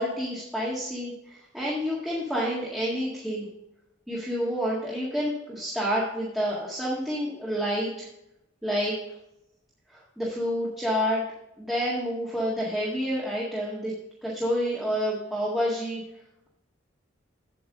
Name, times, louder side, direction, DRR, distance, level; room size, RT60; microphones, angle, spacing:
voice 1, 0.0-3.5 4.1-8.1 8.6-9.0 9.9-11.2 11.6-13.9 14.2-16.0, equal, ahead, -7 dB, 1.8 m, -29 dB
8.5 x 8.5 x 3.8 m, 0.83 s
head